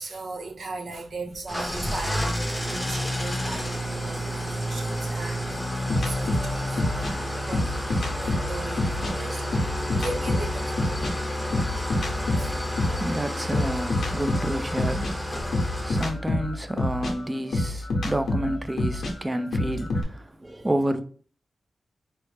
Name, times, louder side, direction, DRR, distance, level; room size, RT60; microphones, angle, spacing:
voice 1, 0.0-5.7 6.1-7.1 7.4-7.8 8.2-10.7 12.4-12.5 12.8-13.0, right 3 dB, 75° right, 0.7 m, -38 dB
Engine starting / Idling, 1.5-16.1, equal, 5° left, 0.8 m, -30 dB
sound 1, 5.9-9.1 9.5-13.1 13.5-20.0, left 2 dB, 75° left, 0.7 m, -27 dB
voice 2, 12.5-15.5 15.8-21.0, right 1 dB, 20° right, 0.4 m, -30 dB
4.5 x 2.0 x 3.2 m
cardioid pair, 65°, 0 cm